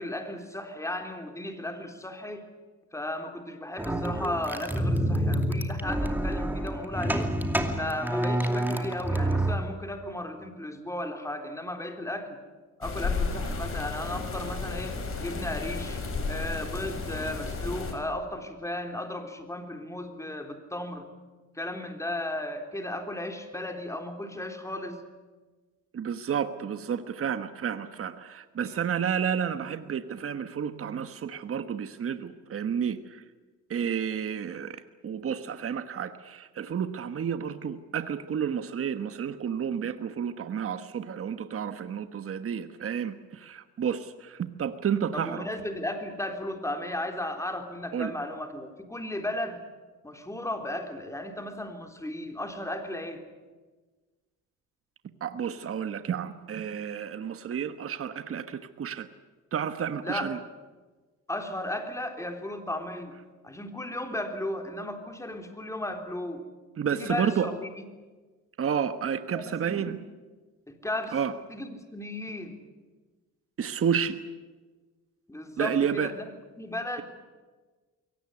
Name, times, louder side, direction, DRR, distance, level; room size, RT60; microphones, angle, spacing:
voice 1, 0.0-2.5 2.9-7.3 7.7-12.4 12.8-21.1 21.5-25.0 45.1-49.6 50.0-53.2 60.0-60.3 61.3-63.1 63.4-66.4 66.9-67.8 69.3-69.9 70.7-71.2 71.5-72.6 75.3-76.1 76.6-77.0, left 1 dB, 10° left, 5 dB, 3.6 m, -35 dB
sound 1, 3.8-9.5, right 1 dB, 5° right, 2.6 m, -28 dB
sound 2, 12.8-17.9, left 4 dB, 45° left, 5.7 m, -33 dB
voice 2, 25.9-33.2 33.7-45.5 47.9-48.1 55.2-59.1 59.5-60.4 66.8-67.5 68.6-70.0 71.1-71.3 73.6-74.2 75.6-76.1, right 8 dB, 45° right, 10 dB, 1.3 m, -31 dB
22.5 x 18.5 x 9.8 m, 1.3 s
cardioid pair, 90°, 30 cm